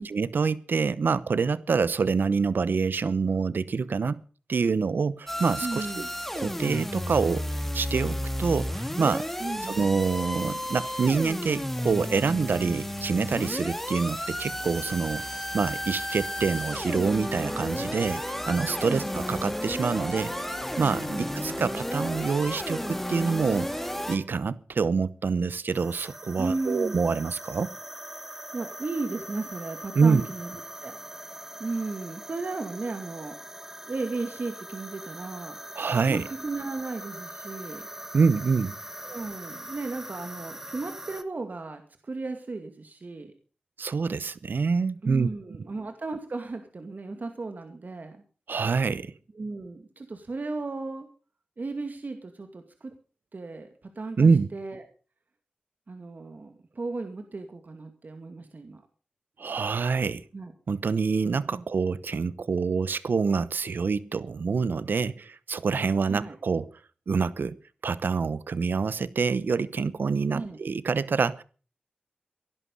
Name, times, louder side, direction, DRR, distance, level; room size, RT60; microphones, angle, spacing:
voice 1, 0.1-4.2 4.5-6.0 6.3-7.4 7.7-9.3 9.8-15.2 15.5-20.3 20.8-21.1 21.3-23.7 24.1-27.7 29.9-30.3 35.8-36.3 38.1-38.7 43.8-45.3 48.5-49.1 54.2-54.5 59.4-60.2 60.7-66.7 67.1-67.5 67.8-71.4, right 5 dB, 80° right, 17 dB, 0.8 m, -26 dB
sound 1, 5.3-24.2, equal, 5° left, 3.1 m, -32 dB
voice 2, 5.6-6.1 9.4-10.0 18.9-19.1 21.1-21.3 26.4-27.0 28.5-31.0 31.6-33.4 33.9-35.6 36.1-37.9 39.0-43.3 45.0-48.2 49.3-51.1 51.6-52.9 53.3-53.7 54.0-54.8 55.9-58.8 60.3-60.5 61.5-61.6 66.1-66.4 70.3-70.6, right 3 dB, 60° right, 6 dB, 2.3 m, -35 dB
sound 2, 14.3-22.2, right 1 dB, 35° right, 3.6 m, -49 dB
sound 3, 25.7-41.2, right 1 dB, 15° right, 1.4 m, -42 dB
17.5 x 11.5 x 5.4 m, 0.38 s
cardioid pair, 50°, 3 cm